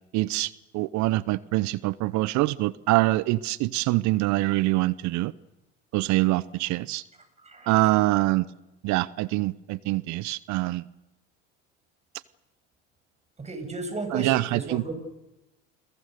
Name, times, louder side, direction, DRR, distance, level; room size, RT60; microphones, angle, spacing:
voice 1, 0.1-5.3 5.9-7.0 7.7-8.5 8.8-10.8 14.1-14.8, right 19 dB, 55° right, 0.9 m, -24 dB
voice 2, 7.4-7.7 13.4-14.9, right 3 dB, 20° right, 7.7 m, -34 dB
30.0 x 22.5 x 6.7 m
hypercardioid pair, 85°, 34 cm